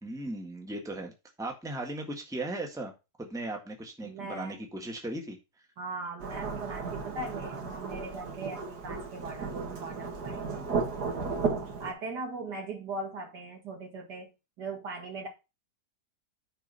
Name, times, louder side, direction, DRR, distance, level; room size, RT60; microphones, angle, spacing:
voice 1, 0.0-1.1 1.4-2.9 3.2-5.4, right 2 dB, ahead, 1.6 m, -37 dB
voice 2, 4.0-4.5 5.8-10.7 11.2-15.3, right 3 dB, 90° right, 2.6 m, -40 dB
Thunderstorm / Rain, 6.2-11.9, right 4 dB, 70° right, 2.4 m, -34 dB
9.8 x 4.6 x 5.5 m
omnidirectional pair, 1.7 m